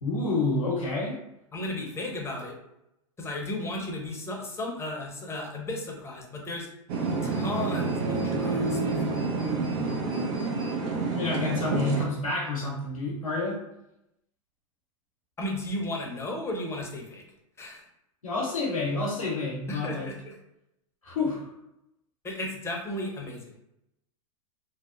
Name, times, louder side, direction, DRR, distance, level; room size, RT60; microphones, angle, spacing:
voice 1, 0.0-1.2 11.1-13.6 18.2-20.1 21.0-21.5, left 3 dB, 90° left, -4 dB, 0.7 m, -29 dB
voice 2, 1.5-2.6 3.2-6.7 7.2-9.2 9.5-9.6 15.4-17.3 17.6-17.9 19.7-20.4 22.2-23.6, left 1 dB, 15° left, 0 dB, 0.6 m, -34 dB
sound 1, 6.9-12.1, right 3 dB, 55° right, 0.6 m, -28 dB
2.7 x 2.0 x 2.3 m, 0.84 s
hypercardioid pair, 100°, 17 cm